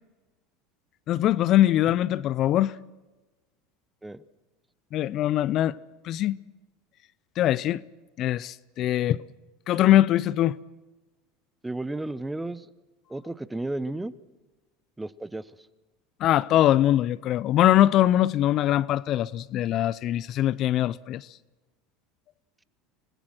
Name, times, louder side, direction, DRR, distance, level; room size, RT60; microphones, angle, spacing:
voice 1, 1.1-2.7 4.9-5.8 6.0-6.4 7.4-7.8 8.2-9.2 9.7-10.6 16.2-21.3, left 13 dB, 50° left, 0.6 m, -22 dB
voice 2, 11.6-12.7 13.1-14.1 15.0-15.5, right 2 dB, 10° right, 1.0 m, -33 dB
26.0 x 20.0 x 6.1 m
supercardioid pair, 100°, 0 cm